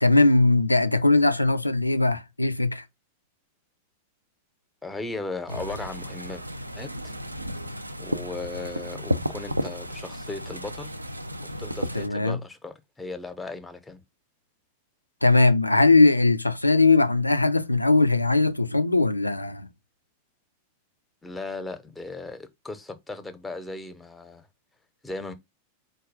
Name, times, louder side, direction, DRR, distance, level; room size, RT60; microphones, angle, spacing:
voice 1, 0.0-2.8 11.9-12.4 15.2-19.7, left 2 dB, 85° left, 0.4 m, -20 dB
voice 2, 4.8-6.4 6.7-7.1 8.0-10.9 11.6-14.0 21.2-24.5 25.0-25.3, left 3 dB, 10° left, 0.7 m, -37 dB
sound 1, 5.5-12.1, equal, 85° right, 0.3 m, -33 dB
4.5 x 2.3 x 4.7 m
figure-of-eight pair, 90°, 0 cm